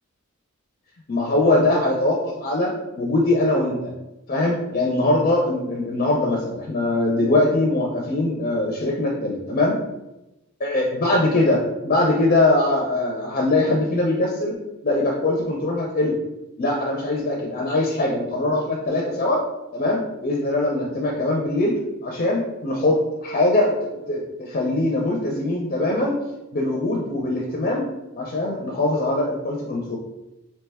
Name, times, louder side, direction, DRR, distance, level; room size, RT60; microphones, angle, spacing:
voice 1, 1.1-2.7 3.0-3.9 4.3-9.8 10.6-14.5 14.8-16.2 16.6-19.4 19.7-21.8 22.0-23.7 24.1-26.2 26.5-27.9 28.2-30.0, left 2 dB, 40° left, -1 dB, 0.4 m, -22 dB
2.9 x 2.2 x 3.3 m, 0.96 s
head